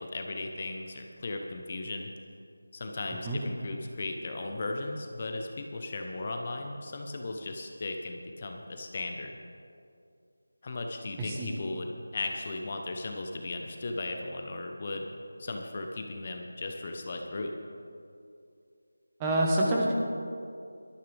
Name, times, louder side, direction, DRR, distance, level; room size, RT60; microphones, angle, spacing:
voice 1, 0.0-2.1 2.7-9.3 10.6-15.1 15.4-17.5, left 2 dB, 35° left, 3 dB, 1.1 m, -36 dB
voice 2, 11.2-11.5 19.2-19.9, right 1 dB, 15° right, -2 dB, 1.5 m, -27 dB
18.5 x 13.0 x 3.6 m, 2.5 s
figure-of-eight pair, 170°, 0 cm